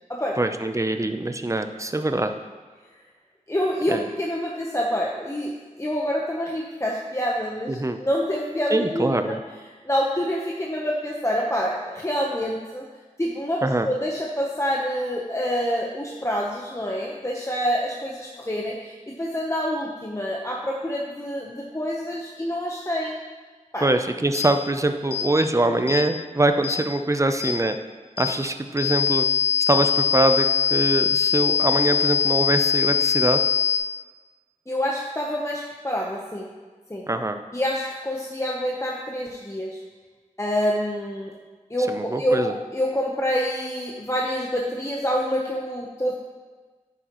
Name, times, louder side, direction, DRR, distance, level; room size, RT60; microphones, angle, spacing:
voice 1, 0.4-2.3 3.9-4.0 7.7-8.0 8.7-9.4 13.6-13.9 23.8-27.8 28.2-29.3 29.7-33.4 37.1-37.4 41.9-42.5, right 2 dB, 25° right, 7 dB, 0.7 m, -23 dB
voice 2, 3.5-9.4 9.8-12.8 13.2-23.2 23.7-23.9 34.7-36.5 36.9-37.1 37.5-39.8 40.4-41.3 41.7-46.2, equal, 20° left, -3 dB, 1.0 m, -27 dB
sound 1, 24.3-24.5 25.1-25.3 25.9-26.0 26.6-26.8 27.4-27.6 28.2-28.3 28.8-33.8, left 6 dB, 45° left, 1.3 m, -22 dB
10.5 x 9.1 x 3.1 m, 1.4 s
wide cardioid pair, 60°, 13 cm